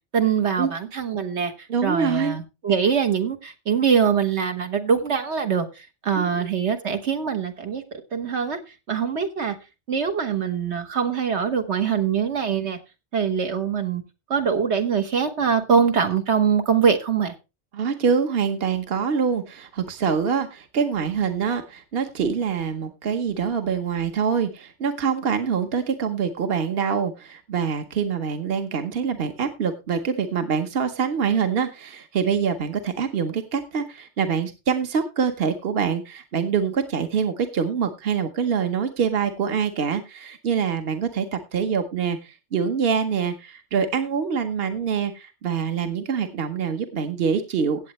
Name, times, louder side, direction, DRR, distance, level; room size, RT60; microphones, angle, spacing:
voice 1, 0.1-1.5 1.8-8.6 8.9-9.5 9.9-12.8 13.1-14.0 14.3-17.3, right 6 dB, 85° right, 1.7 m, -23 dB
voice 2, 1.7-2.4 6.1-6.4 17.7-47.9, right 6 dB, 60° right, 1.3 m, -25 dB
17.0 x 7.8 x 3.1 m
omnidirectional pair, 1.1 m